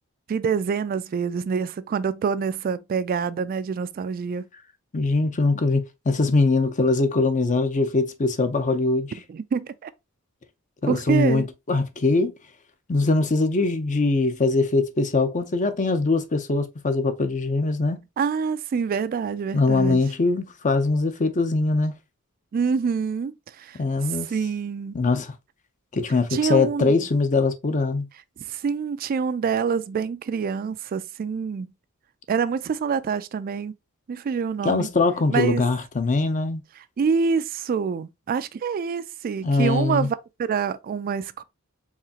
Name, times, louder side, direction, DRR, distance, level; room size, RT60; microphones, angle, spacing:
voice 1, 0.3-4.5 9.3-9.9 10.9-11.5 18.2-20.0 22.5-23.8 24.3-24.9 26.3-26.9 28.5-31.7 32.3-33.7 34.1-34.9 35.3-35.6 37.0-41.4, right 6 dB, 40° right, 0.3 m, -26 dB
voice 2, 4.9-9.1 10.8-12.3 12.9-18.0 19.5-21.9 23.7-24.3 24.9-25.3 25.9-28.1 34.6-36.6 39.4-40.1, left 3 dB, 35° left, 0.6 m, -22 dB
4.8 x 3.2 x 2.8 m
head